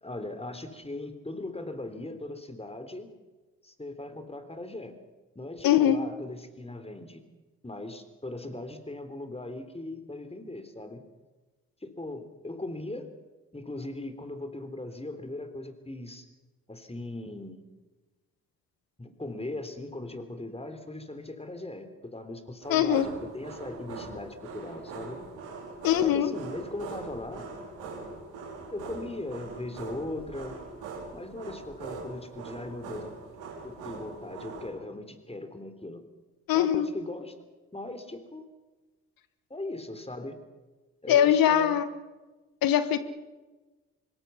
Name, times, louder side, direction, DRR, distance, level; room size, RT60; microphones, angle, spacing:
voice 1, 0.0-3.1 3.6-5.0 5.4-7.2 7.6-11.0 11.8-13.1 13.5-16.2 16.7-17.6 19.0-25.2 26.0-27.5 28.7-30.6 31.1-33.2 33.6-36.0 36.5-37.3 37.7-38.4 39.5-40.4 41.0-41.8, left 2 dB, 15° left, 8 dB, 3.7 m, -39 dB
voice 2, 5.6-6.0 22.7-23.1 25.8-26.3 36.5-36.9 41.1-41.9 42.6-43.0, left 10 dB, 65° left, 12 dB, 1.4 m, -22 dB
sound 1, 22.6-34.7, right 4 dB, 70° right, 5.5 m, -42 dB
25.0 x 22.0 x 5.8 m, 1.2 s
figure-of-eight pair, 40°, 38 cm